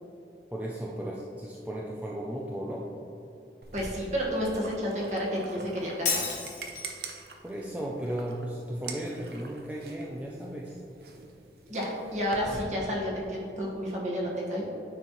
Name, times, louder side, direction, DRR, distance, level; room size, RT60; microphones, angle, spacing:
voice 1, 0.5-2.9 7.4-10.8, right 1 dB, 10° right, -3 dB, 0.4 m, -35 dB
sound 1, 3.6-12.6, right 4 dB, 60° right, 0.6 m, -46 dB
voice 2, 3.7-6.2 11.7-14.7, equal, 40° right, -4 dB, 1.4 m, -31 dB
Shatter, 6.1-7.0, left 5 dB, 45° left, 1.3 m, -31 dB
9.5 x 4.3 x 3.0 m, 2.8 s
head